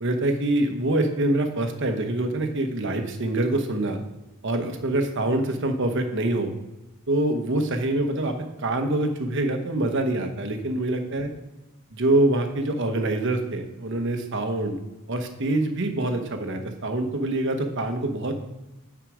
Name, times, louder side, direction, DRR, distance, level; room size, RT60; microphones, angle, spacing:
voice 1, 0.0-4.0 4.4-6.5 7.1-11.3 11.9-14.8 15.1-18.3, right 2 dB, 55° right, 6 dB, 1.1 m, -25 dB
9.2 x 4.9 x 5.0 m, 1.0 s
head